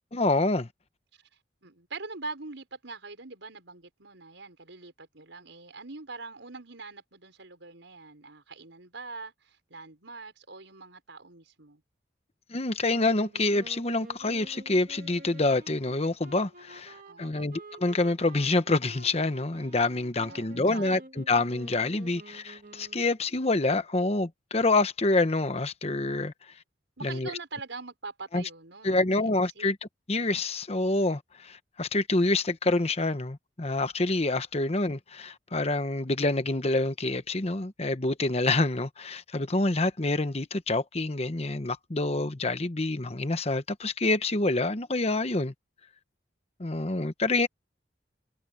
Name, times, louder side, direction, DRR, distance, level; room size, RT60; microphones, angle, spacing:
voice 1, 0.1-0.7 12.5-26.3 27.0-27.3 28.3-28.4 28.8-29.8 30.1-45.5 46.6-47.5, left 2 dB, 35° left, 1.0 m, -27 dB
voice 2, 1.6-11.8 17.0-17.5 20.3-21.1 27.0-29.7, right 3 dB, 85° right, 5.0 m, -43 dB
sound 1, 12.9-23.3, right 2 dB, 45° right, 1.9 m, -49 dB
head